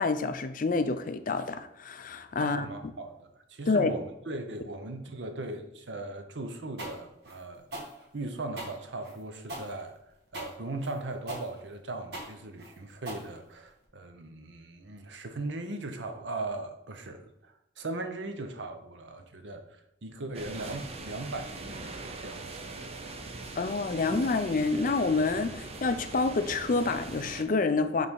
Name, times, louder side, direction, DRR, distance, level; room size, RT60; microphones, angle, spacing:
voice 1, 0.0-2.7 3.7-4.0 23.6-28.1, left 3 dB, 50° left, 10 dB, 0.5 m, -28 dB
voice 2, 2.4-7.7 8.1-10.0 10.3-22.5, right 2 dB, 85° right, 6 dB, 0.8 m, -38 dB
sound 1, 6.8-13.9, right 1 dB, 65° right, 1.6 m, -41 dB
sound 2, 20.3-27.4, right 2 dB, 35° right, 0.6 m, -41 dB
5.3 x 4.1 x 4.7 m, 0.84 s
head